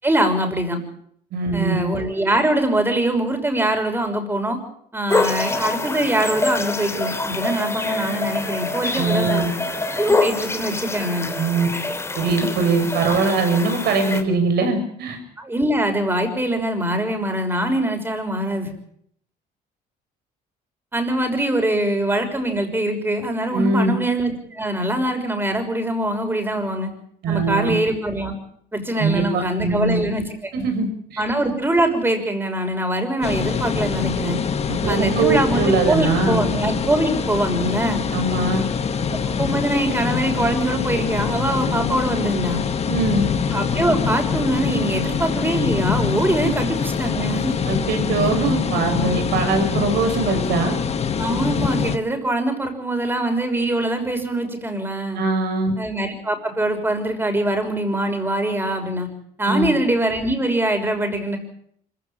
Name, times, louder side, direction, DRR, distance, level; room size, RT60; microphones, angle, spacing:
voice 1, 0.0-0.8 1.5-4.6 4.9-9.5 9.9-11.3 15.4-18.7 20.9-26.9 27.3-28.3 28.7-30.2 31.2-34.4 34.9-38.0 39.1-42.6 43.5-47.5 51.2-55.2 55.8-59.1 59.4-61.4, right 1 dB, 15° right, 6 dB, 6.2 m, -23 dB
voice 2, 1.3-1.8 9.0-9.5 11.4-11.7 12.1-15.2 23.5-23.9 27.2-27.7 28.9-30.1 30.5-31.2 34.7-36.5 38.1-38.7 42.9-43.3 46.4-46.5 47.7-50.8 55.1-55.7 59.5-59.7, right 3 dB, 70° right, 6 dB, 6.8 m, -22 dB
sound 1, 5.1-14.2, left 2 dB, 15° left, 3.6 m, -25 dB
sound 2, 33.2-52.0, left 6 dB, 40° left, 1.6 m, -24 dB
25.5 x 16.0 x 8.9 m, 0.66 s
cardioid pair, 110°, 17 cm